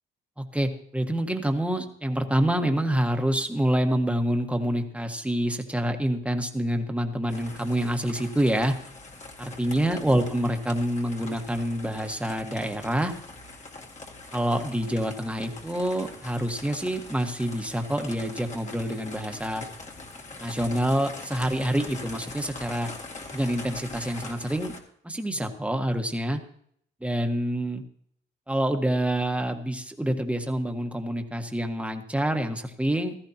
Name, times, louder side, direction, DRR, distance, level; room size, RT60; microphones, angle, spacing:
voice 1, 0.4-8.7 9.4-13.1 14.3-19.6 20.4-22.9 23.3-24.7 25.0-26.4 27.0-27.8 28.5-33.1, right 1 dB, 5° right, 5 dB, 1.5 m, -27 dB
sound 1, 7.3-24.8, left 3 dB, 35° left, 2.2 m, -43 dB
16.0 x 13.5 x 2.9 m, 0.65 s
cardioid pair, 90°, 20 cm